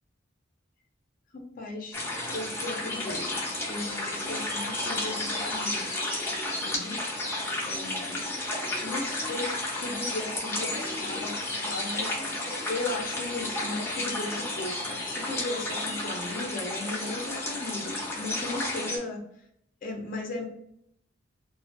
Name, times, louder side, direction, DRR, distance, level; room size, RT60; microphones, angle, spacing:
voice 1, 1.3-2.0 2.3-3.4 3.7-6.0 6.5-7.0 7.6-8.2 8.8-19.2 19.8-20.5, left 2 dB, 45° left, 2 dB, 0.5 m, -36 dB
sound 1, 1.9-19.0, left 1 dB, 15° left, 0.7 m, -32 dB
2.6 x 2.4 x 2.5 m, 0.74 s
head